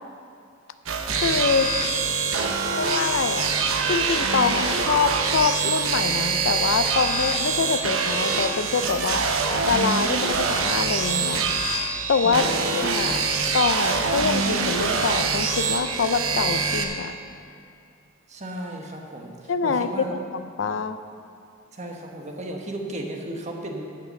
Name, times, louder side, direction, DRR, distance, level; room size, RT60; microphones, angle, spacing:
sound 1, 0.9-16.8, right 4 dB, 85° right, 0.9 m, -24 dB
voice 1, 1.1-1.7 2.7-3.5 3.9-9.2 9.6-11.4 12.1-12.5 12.7-13.2 13.5-17.1 19.5-21.0, left 5 dB, 70° left, 11 dB, 0.5 m, -25 dB
voice 2, 12.2-12.8 13.0-13.3 18.3-20.2 21.7-23.9, right 1 dB, 35° right, 1 dB, 1.2 m, -35 dB
12.0 x 5.8 x 7.7 m, 2.4 s
head